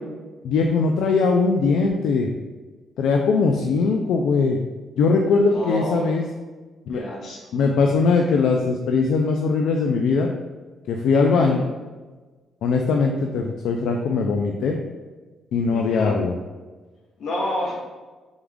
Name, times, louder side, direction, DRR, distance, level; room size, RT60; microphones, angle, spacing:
voice 1, 0.4-2.3 3.0-4.6 5.0-6.2 6.9-7.0 7.5-10.3 10.9-11.7 12.6-14.8 15.5-16.3, left 4 dB, 75° left, 2 dB, 0.3 m, -20 dB
voice 2, 5.5-6.2 6.9-7.6 11.4-11.6 15.7-16.2 17.2-17.7, left 1 dB, 55° left, -2 dB, 1.1 m, -29 dB
3.6 x 3.4 x 3.5 m, 1.3 s
cardioid pair, 175°, 0 cm